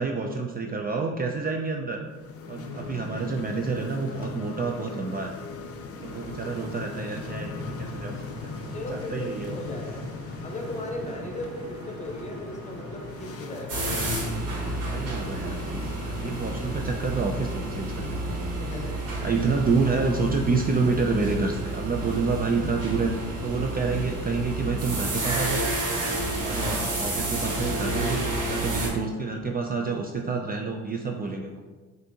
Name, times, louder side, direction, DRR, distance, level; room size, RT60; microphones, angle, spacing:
voice 1, 0.0-2.0 2.5-5.3 6.0-8.2 8.7-9.6 14.9-18.5 19.2-23.1 23.4-25.6 26.1-28.2 28.5-31.6, right 4 dB, 30° right, 2 dB, 0.4 m, -28 dB
sound 1, 2.0-18.7, left 4 dB, 50° left, 0.5 m, -39 dB
sound 2, 6.0-24.0, right 4 dB, 65° right, 0.7 m, -45 dB
voice 2, 8.7-10.1 10.4-13.9 18.6-19.1, left 1 dB, 25° left, 1 dB, 0.9 m, -37 dB
sound 3, 13.7-28.9, right 1 dB, 85° right, 1.4 m, -30 dB
6.0 x 2.7 x 2.8 m, 1.3 s
cardioid pair, 90°, 30 cm